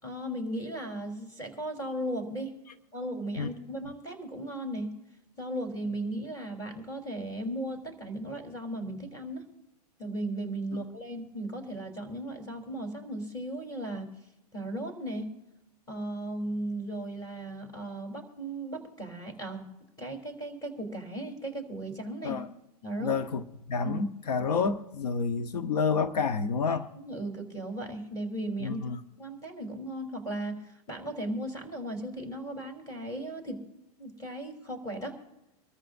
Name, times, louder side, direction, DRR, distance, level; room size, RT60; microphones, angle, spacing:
voice 1, 0.0-2.5 2.9-4.9 5.4-9.4 10.0-14.1 14.5-15.3 15.9-19.7 20.0-22.4 22.8-23.1 23.8-24.1 26.7-28.9 29.2-33.6 34.0-35.2, right 1 dB, 20° left, 3.6 m, -36 dB
voice 2, 23.0-23.4 23.7-26.9 28.6-29.0, left 5 dB, 80° left, 1.0 m, -29 dB
26.0 x 14.0 x 2.6 m
hypercardioid pair, 135°, 20 cm